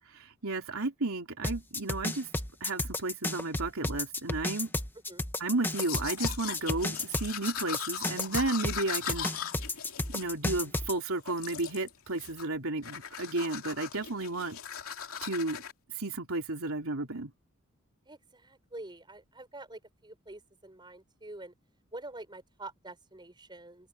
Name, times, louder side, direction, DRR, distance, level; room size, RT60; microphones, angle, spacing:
voice 1, 0.4-2.3 2.6-4.7 5.4-9.3 10.1-14.6 15.2-15.6 16.0-17.3, right 2 dB, 80° right, 3.5 m, -33 dB
sound 1, 1.4-10.9, left 2 dB, 10° left, 1.6 m, -32 dB
Domestic sounds home sounds, 5.6-10.9 11.3-11.9 12.2-12.6 12.8-15.7, left 9 dB, 85° left, 2.6 m, -39 dB
voice 2, 18.1-21.5 21.9-23.9, right 2 dB, 20° right, 5.4 m, -46 dB
open air
head